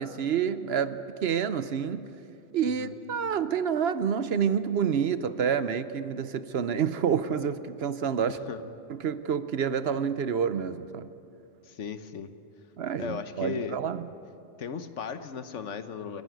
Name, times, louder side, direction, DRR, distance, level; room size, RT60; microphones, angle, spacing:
voice 1, 0.0-2.1 2.5-8.4 8.9-11.1 12.8-14.0, right 7 dB, 60° right, 13 dB, 0.9 m, -28 dB
voice 2, 11.6-12.3 13.0-13.8 14.6-16.2, left 6 dB, 80° left, 10 dB, 1.3 m, -36 dB
28.5 x 11.0 x 9.3 m, 2.6 s
omnidirectional pair, 1.2 m